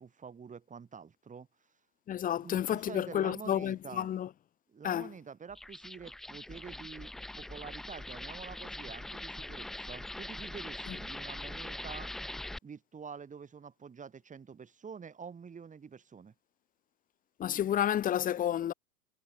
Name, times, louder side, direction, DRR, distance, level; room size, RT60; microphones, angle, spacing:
voice 1, 0.0-1.5 2.4-4.1 4.7-7.1 7.4-12.1 12.6-16.3, right 6 dB, 15° right, 7.7 m, -47 dB
voice 2, 2.1-4.3 4.8-5.1 10.9-11.0 17.4-18.7, left 10 dB, 15° left, 1.2 m, -30 dB
sound 1, 5.5-12.6, left 1 dB, ahead, 0.4 m, -42 dB
figure-of-eight pair, 100°, 48 cm